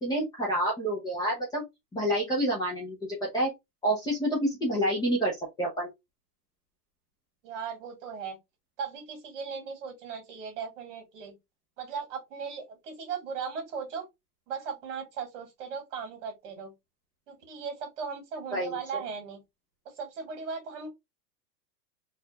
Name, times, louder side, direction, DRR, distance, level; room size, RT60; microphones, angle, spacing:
voice 1, 0.0-1.6 1.9-3.0 3.3-3.5 3.8-5.3 5.6-5.9 18.5-19.0, right 1 dB, 10° left, 0.8 m, -28 dB
voice 2, 7.4-8.4 8.8-11.4 11.8-14.1 14.5-16.7 17.3-19.4 20.0-20.9, right 6 dB, 50° right, 2.1 m, -37 dB
4.0 x 2.7 x 3.0 m
supercardioid pair, 155°, 47 cm